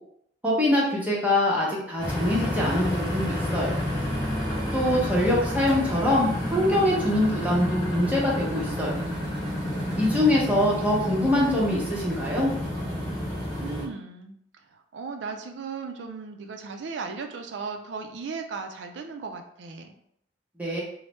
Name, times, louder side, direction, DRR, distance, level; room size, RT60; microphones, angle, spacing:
voice 1, 0.4-3.8 4.7-9.0 10.0-12.5 20.6-20.8, left 1 dB, 10° right, -5 dB, 0.7 m, -24 dB
sound 1, 2.0-13.8, left 1 dB, 25° left, 0.9 m, -30 dB
voice 2, 5.0-6.2 9.9-10.9 11.3-11.8 13.6-14.4 14.7-19.9, right 4 dB, 70° right, 6 dB, 0.4 m, -37 dB
3.1 x 2.1 x 3.0 m, 0.71 s
head